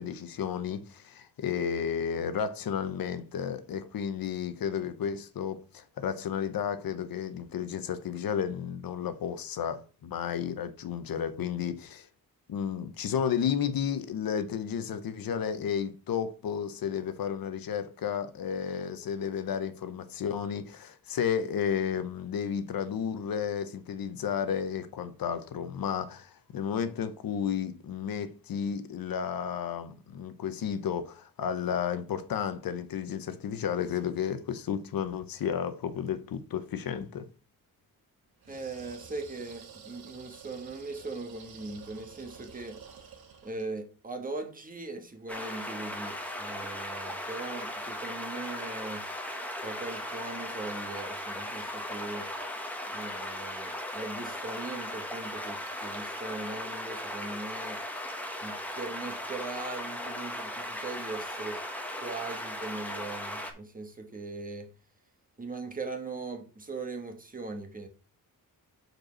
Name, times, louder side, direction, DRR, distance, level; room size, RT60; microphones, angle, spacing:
voice 1, 0.0-12.1 12.5-37.3, left 8 dB, 70° left, 0.8 m, -32 dB
sound 1, 38.4-43.7, right 6 dB, 85° right, 1.7 m, -50 dB
voice 2, 38.5-42.8 43.4-49.1 49.6-52.3 52.9-57.8 58.4-61.6 62.0-64.7 65.4-67.9, right 3 dB, 25° right, 1.3 m, -40 dB
sound 2, 45.3-63.5, left 1 dB, 5° left, 1.3 m, -37 dB
5.1 x 4.6 x 6.2 m
wide cardioid pair, 135°, 36 cm